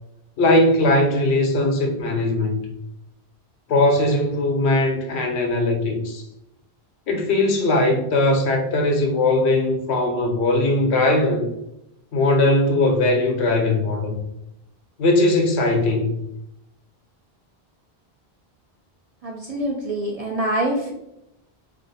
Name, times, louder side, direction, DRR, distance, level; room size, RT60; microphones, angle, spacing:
voice 1, 0.4-2.6 3.7-6.2 7.1-11.5 12.1-14.2 15.0-16.2, left 2 dB, 90° left, 3 dB, 1.0 m, -19 dB
voice 2, 19.2-20.9, right 1 dB, 55° right, -1 dB, 0.4 m, -25 dB
2.6 x 2.4 x 4.0 m, 0.83 s
omnidirectional pair, 1.1 m